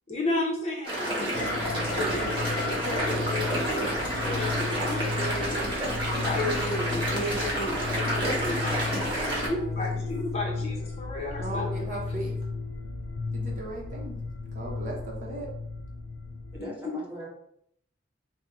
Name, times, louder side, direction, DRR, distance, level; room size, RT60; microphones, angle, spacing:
voice 1, 0.1-1.6 1.9-3.9 4.2-9.0 9.3-11.7 16.6-17.0, left 1 dB, 35° left, -1 dB, 0.7 m, -33 dB
sound 1, 0.8-9.5, right 1 dB, 25° right, 1.1 m, -29 dB
sound 2, 1.3-16.6, left 3 dB, 70° left, 0.4 m, -34 dB
voice 2, 1.5-2.6 9.2-10.1 11.4-12.4 13.3-14.2 14.5-15.5, right 2 dB, 40° right, -2 dB, 0.7 m, -39 dB
voice 3, 16.5-17.3, right 1 dB, 10° right, -7 dB, 1.3 m, -40 dB
4.0 x 2.0 x 4.0 m, 0.71 s
head